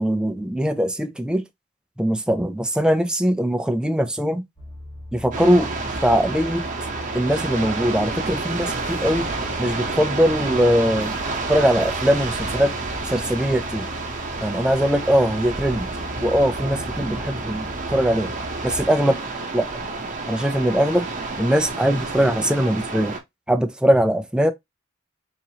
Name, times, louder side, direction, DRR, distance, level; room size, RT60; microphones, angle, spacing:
voice 1, 0.0-1.4 2.0-4.4 5.1-5.7 6.0-6.6 7.1-9.3 9.6-11.1 11.5-12.8 13.1-13.9 14.4-15.9 16.2-18.3 18.6-19.2 19.5-19.7 20.3-21.1 21.4-23.1 23.5-24.5, equal, 5° right, 0.4 m, -21 dB
sound 1, 4.6-18.9, left 1 dB, 25° left, 1.3 m, -38 dB
sound 2, 5.3-23.2, right 3 dB, 40° right, 0.7 m, -30 dB
3.9 x 3.0 x 2.8 m
head